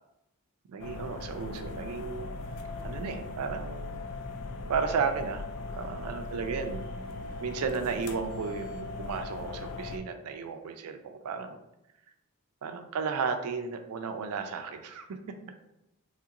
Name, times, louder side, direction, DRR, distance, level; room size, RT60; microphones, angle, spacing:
voice 1, 0.7-2.3 2.8-4.0 4.7-5.4 5.7-6.8 7.4-11.6 12.6-15.4, right 5 dB, 85° right, 7 dB, 0.4 m, -34 dB
sound 1, 0.8-10.0, left 3 dB, 85° left, 0.3 m, -39 dB
2.9 x 2.4 x 2.8 m, 0.86 s
head